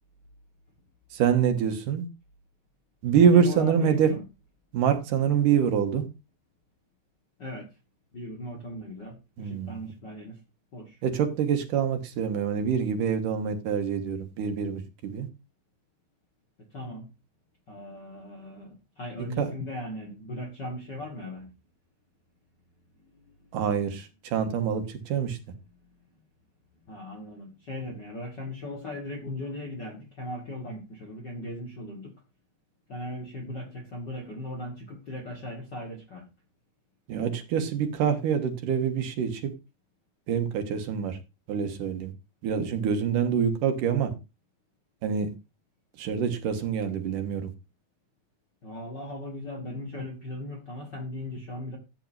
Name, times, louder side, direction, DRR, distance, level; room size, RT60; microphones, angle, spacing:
voice 1, 1.1-2.0 3.0-4.1 4.7-6.0 9.4-9.8 11.0-15.3 19.4-19.5 23.5-25.4 37.1-39.5 40.3-41.2 41.5-42.1 42.4-44.1 45.0-45.3 46.0-47.5, right 7 dB, 70° right, 2.8 m, -25 dB
voice 2, 3.2-4.2 7.4-7.7 8.1-10.4 10.7-11.0 16.7-17.1 17.7-21.5 23.1-23.3 26.9-32.1 32.9-36.3 48.6-51.8, left 1 dB, 45° left, 1.5 m, -38 dB
13.5 x 9.4 x 2.6 m
omnidirectional pair, 4.1 m